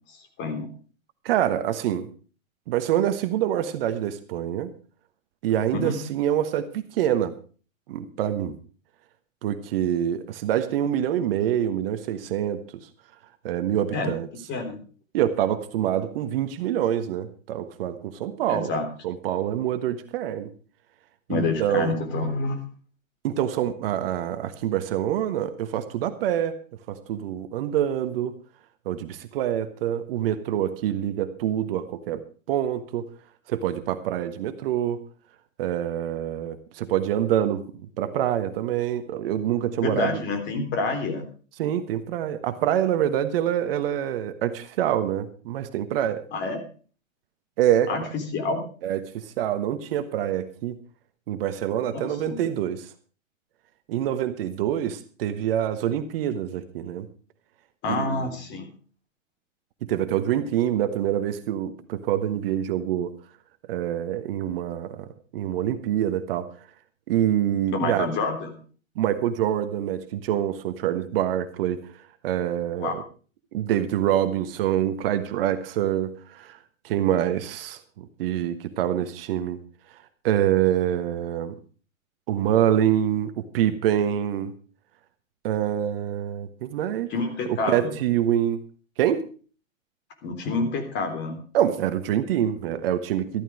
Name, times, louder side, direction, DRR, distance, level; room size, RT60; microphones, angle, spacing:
voice 1, 0.4-0.7 5.7-6.0 13.9-14.1 14.5-14.8 18.5-18.9 21.3-22.6 39.8-41.3 46.3-46.6 47.9-48.0 48.3-48.6 51.9-52.4 57.8-58.7 67.7-68.5 72.8-72.9 87.1-87.9 90.2-91.4, left 3 dB, 25° left, 7 dB, 3.4 m, -28 dB
voice 2, 1.2-2.1 2.7-4.7 5.4-7.3 7.9-8.6 9.4-12.6 13.4-14.3 15.1-18.7 19.0-20.5 21.3-22.0 23.2-26.6 26.9-28.3 28.8-33.1 33.5-35.0 35.6-40.2 41.6-46.2 47.6-48.1 48.8-50.8 51.3-52.9 53.9-57.1 57.9-58.2 59.8-63.1 63.7-65.1 65.3-66.5 67.1-68.1 69.0-71.8 72.2-73.0 73.5-76.6 76.8-79.6 80.2-81.5 82.3-84.5 85.4-87.1 87.5-88.6 89.0-89.2 91.5-93.4, right 11 dB, 45° right, 10 dB, 1.3 m, -26 dB
14.0 x 12.5 x 4.8 m, 0.39 s
hypercardioid pair, 125°, 40 cm